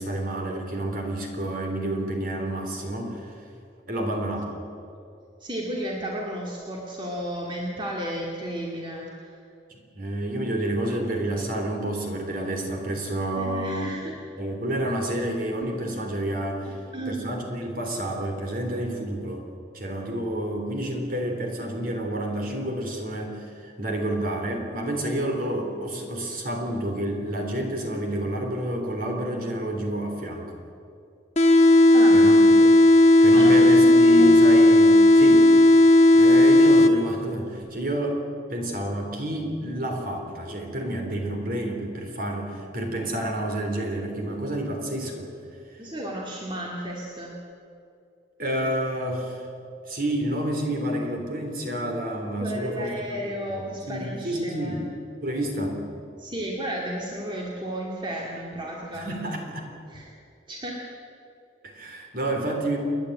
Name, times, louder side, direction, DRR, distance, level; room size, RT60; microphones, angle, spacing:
voice 1, 0.0-3.3 3.9-4.4 9.7-14.0 14.4-16.8 17.1-19.4 19.7-30.5 32.1-32.7 33.2-35.5 36.1-38.2 38.5-45.3 48.4-49.5 49.8-52.9 53.5-53.6 53.9-54.8 55.2-55.8 58.9-59.7 61.6-62.8, right 1 dB, 50° right, 2 dB, 3.6 m, -29 dB
voice 2, 5.4-9.4 13.4-14.2 16.6-17.3 31.9-32.2 33.4-34.3 45.8-47.3 52.4-54.8 56.2-59.1 59.9-60.1 60.5-60.8, right 1 dB, 25° right, -2 dB, 2.3 m, -33 dB
sound 1, 31.4-37.3, left 1 dB, 35° left, 1.1 m, -15 dB
29.5 x 10.5 x 9.3 m, 2.5 s
head